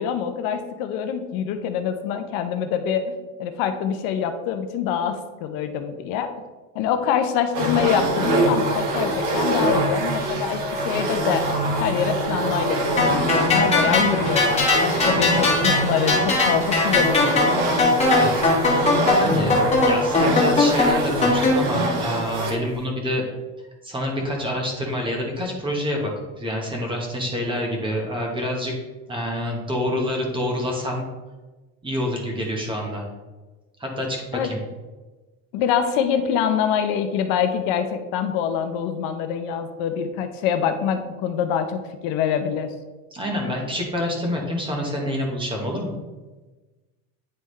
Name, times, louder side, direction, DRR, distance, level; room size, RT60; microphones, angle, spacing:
voice 1, 0.0-3.0 3.4-6.3 6.7-11.4 11.8-17.7 34.3-34.5 35.5-42.7, left 8 dB, 65° left, 8 dB, 0.7 m, -25 dB
sound 1, 7.5-22.7, right 1 dB, 55° right, 1.4 m, -24 dB
sound 2, 13.0-21.5, left 3 dB, 15° left, 1.6 m, -20 dB
voice 2, 18.0-18.8 19.1-23.2 23.8-28.7 29.1-31.1 31.8-33.1 33.8-34.6 43.1-45.9, equal, 15° right, 0 dB, 1.1 m, -27 dB
9.7 x 3.6 x 3.1 m, 1.2 s
cardioid pair, 160°, 38 cm